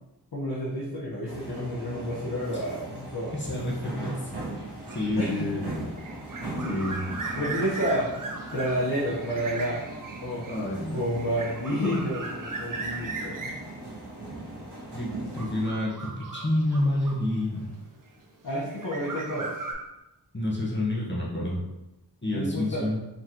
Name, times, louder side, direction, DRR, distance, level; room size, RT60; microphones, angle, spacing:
voice 1, 0.3-3.4 5.2-5.5 6.6-6.9 7.4-8.1 8.5-9.8 10.2-10.5 10.9-13.5 18.4-19.5 22.3-22.9, equal, 65° left, -7 dB, 1.2 m, -30 dB
sound 1, 1.3-15.7, right 1 dB, 80° right, 1.5 m, -39 dB
voice 2, 3.3-5.6 6.7-7.0 10.5-11.0 14.9-17.7 20.3-21.6 22.2-23.0, left 1 dB, 25° left, -5 dB, 1.2 m, -29 dB
sound 2, 4.9-17.8 18.5-19.7, right 3 dB, 50° right, 0.7 m, -38 dB
4.3 x 3.8 x 3.0 m, 0.98 s
wide cardioid pair, 50°, 40 cm